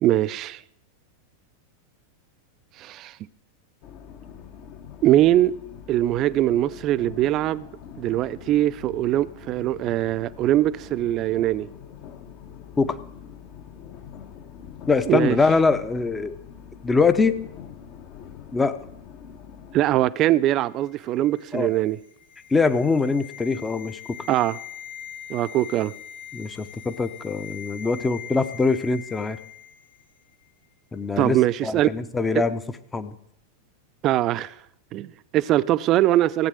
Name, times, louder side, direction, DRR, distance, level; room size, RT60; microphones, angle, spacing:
voice 1, 0.0-0.6 2.8-3.1 5.0-5.5 5.9-7.7 8.0-11.7 15.1-15.4 19.7-22.0 24.3-24.6 25.3-25.9 31.2-31.9 34.0-34.5 34.9-36.5, right 14 dB, 35° right, 0.5 m, -22 dB
sound 1, 3.8-20.1, left 8 dB, 45° left, 1.3 m, -44 dB
voice 2, 14.9-16.4 16.8-17.4 18.5-18.8 21.5-21.7 22.5-24.2 26.3-29.4 30.9-32.6 32.9-33.2, left 4 dB, 15° left, 0.9 m, -23 dB
sound 2, 20.8-30.1 30.3-30.5, left 9 dB, 60° left, 1.6 m, -42 dB
16.0 x 8.2 x 6.4 m
figure-of-eight pair, 90°, 0 cm